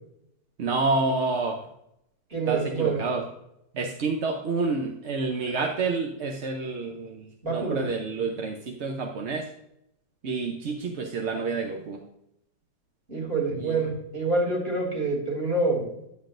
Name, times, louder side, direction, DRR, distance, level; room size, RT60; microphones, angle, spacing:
voice 1, 0.6-1.6 2.5-3.2 3.8-7.2 7.5-9.4 10.2-12.0 13.6-13.7, right 3 dB, 55° right, 2 dB, 0.8 m, -28 dB
voice 2, 2.3-3.1 5.4-5.6 7.4-7.9 13.1-15.9, right 3 dB, 35° right, -2 dB, 2.9 m, -27 dB
10.5 x 7.6 x 2.6 m, 0.79 s
omnidirectional pair, 1.8 m